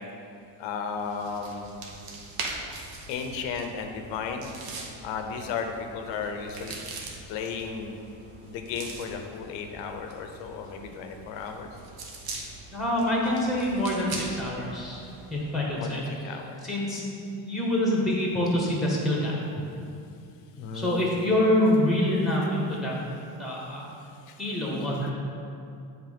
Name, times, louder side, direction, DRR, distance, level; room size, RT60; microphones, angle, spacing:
voice 1, 0.6-1.7 3.1-4.5 5.0-6.8 7.3-7.9 8.4-11.7 15.7-16.6 20.6-21.0 24.3-24.4, left 6 dB, 90° left, 5 dB, 0.8 m, -34 dB
sound 1, 1.0-15.6, right 3 dB, 55° right, 1.1 m, -42 dB
voice 2, 12.7-16.4 16.6-19.3 20.7-22.9 23.4-23.9 24.4-25.1, left 1 dB, ahead, -3 dB, 1.3 m, -26 dB
7.6 x 3.3 x 5.1 m, 2.6 s
cardioid pair, 100°, 44 cm